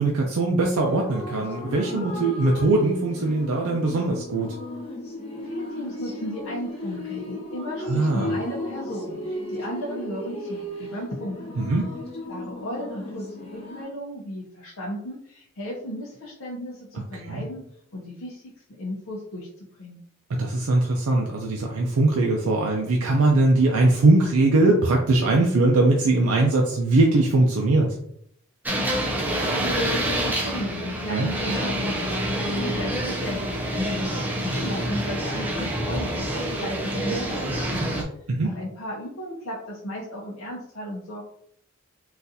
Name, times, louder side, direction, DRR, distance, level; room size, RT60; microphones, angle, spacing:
voice 1, 0.0-4.6 7.8-8.3 11.6-11.9 17.1-17.4 20.4-27.9 31.1-31.3 38.3-38.5, right 2 dB, 90° right, 0 dB, 0.5 m, -21 dB
sound 1, 0.8-13.8, left 1 dB, 30° left, 1.1 m, -35 dB
voice 2, 5.4-11.5 12.3-17.6 17.9-20.0 28.7-32.0 32.3-33.8 34.3-38.0 38.4-41.2, equal, 75° left, -5 dB, 0.7 m, -35 dB
sound 2, 28.7-38.0, equal, 10° right, 0.5 m, -27 dB
3.9 x 2.5 x 2.7 m, 0.71 s
head